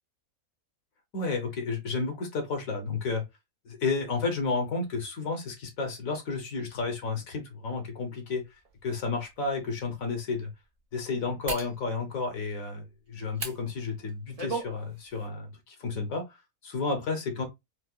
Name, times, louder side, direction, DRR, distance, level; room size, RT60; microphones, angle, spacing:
voice 1, 1.1-3.2 3.6-8.4 8.8-10.5 10.9-16.2 16.6-17.5, left 4 dB, 65° left, 1.4 m, -31 dB
sound 1, 8.6-8.7 9.4-9.5 11.5-11.7 13.3-13.6 14.1-14.7 15.1-15.3, right 3 dB, 35° right, 0.7 m, -34 dB
4.7 x 2.1 x 2.2 m
omnidirectional pair, 1.6 m